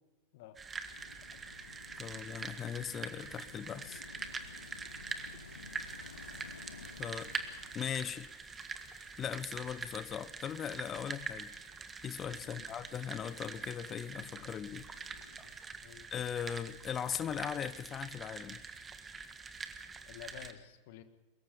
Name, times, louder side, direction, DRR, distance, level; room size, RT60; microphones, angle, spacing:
sound 1, 0.6-20.5, right 4 dB, 15° right, 1.6 m, -45 dB
sound 2, 0.8-15.5, left 5 dB, 70° left, 1.2 m, -56 dB
voice 1, 2.0-4.0 7.0-7.3 7.7-8.3 9.2-11.5 12.0-14.9 16.1-18.6, left 8 dB, 25° left, 0.8 m, -39 dB
voice 2, 20.1-21.0, left 11 dB, 50° left, 1.7 m, -51 dB
23.5 x 22.0 x 5.3 m
figure-of-eight pair, 90°, 0 cm